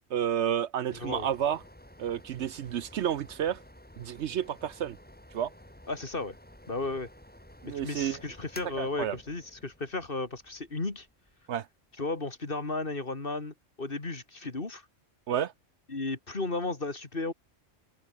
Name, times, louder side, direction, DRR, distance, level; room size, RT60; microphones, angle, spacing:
voice 1, 0.1-1.6 2.0-3.6 4.0-5.0 5.3-5.5 7.6-8.2 8.8-9.2 11.5-11.7 15.3-15.5, right 9 dB, 65° right, 0.9 m, -30 dB
voice 2, 0.9-1.3 5.9-6.3 6.7-7.1 7.6-11.1 12.0-14.9 15.9-17.3, left 3 dB, 45° left, 2.8 m, -34 dB
sound 1, 0.9-13.3, left 1 dB, 5° left, 2.5 m, -53 dB
omnidirectional pair, 1.3 m